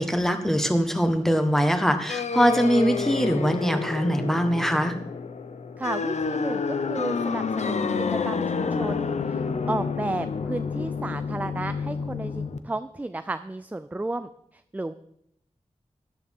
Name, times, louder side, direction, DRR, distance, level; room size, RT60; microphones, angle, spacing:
voice 1, 0.0-5.0, equal, 5° left, 7 dB, 1.4 m, -22 dB
sound 1, 2.1-12.6, left 5 dB, 75° left, 0.7 m, -29 dB
voice 2, 5.8-14.9, right 2 dB, 15° right, 11 dB, 0.4 m, -33 dB
13.0 x 11.0 x 3.7 m, 0.75 s
wide cardioid pair, 75°, 12 cm